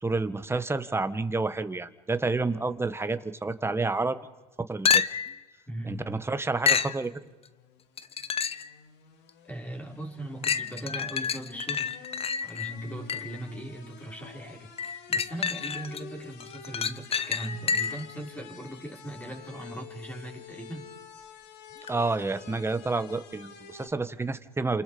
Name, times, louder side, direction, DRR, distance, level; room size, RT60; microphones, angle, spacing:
voice 1, 0.0-4.2 4.6-5.0 5.8-7.1 21.9-24.8, right 3 dB, 15° right, 11 dB, 1.5 m, -29 dB
sound 1, 4.9-5.4 6.7-7.0 8.0-8.7 9.3-9.4 10.4-13.4 14.8-16.0 16.4-18.1 21.9-22.0, left 6 dB, 30° left, 1.0 m, -28 dB
voice 2, 5.7-6.2 9.5-20.8, right 1 dB, 10° left, 1 dB, 5.7 m, -39 dB
sound 2, 7.1-23.9, left 8 dB, 65° left, 2.4 m, -49 dB
29.5 x 28.0 x 5.2 m, 1.2 s
hypercardioid pair, 75°, 19 cm